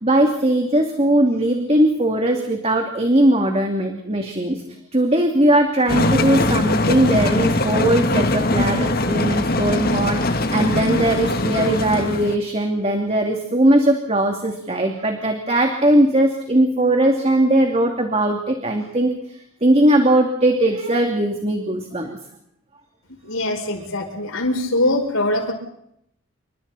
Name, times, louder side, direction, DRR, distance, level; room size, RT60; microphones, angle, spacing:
voice 1, 0.0-4.6 4.9-19.1 19.6-22.2, right 1 dB, 30° right, 3 dB, 2.6 m, -19 dB
sound 1, 5.9-12.4, left 2 dB, 45° left, 1.9 m, -21 dB
voice 2, 23.2-25.5, left 1 dB, 75° left, 2 dB, 7.3 m, -22 dB
29.5 x 26.5 x 4.2 m, 0.74 s
head